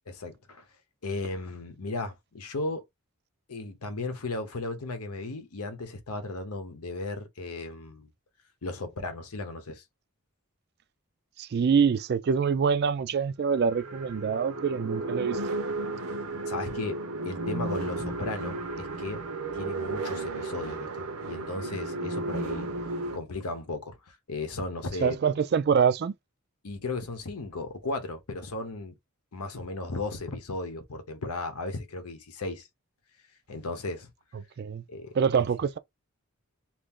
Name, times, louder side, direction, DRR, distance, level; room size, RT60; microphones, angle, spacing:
voice 1, 0.1-0.6 1.0-2.8 3.5-8.1 8.6-9.8 16.5-19.2 19.5-22.7 23.1-25.2 26.6-28.9 29.3-32.7 33.5-34.1 34.9-35.1, left 3 dB, 90° left, 0.9 m, -35 dB
voice 2, 11.4-15.4 25.0-26.1 34.6-34.8 35.1-35.8, right 6 dB, 45° right, 0.3 m, -25 dB
sound 1, 12.4-12.5 13.5-23.2, right 2 dB, 75° right, 0.7 m, -34 dB
2.8 x 2.6 x 3.6 m
head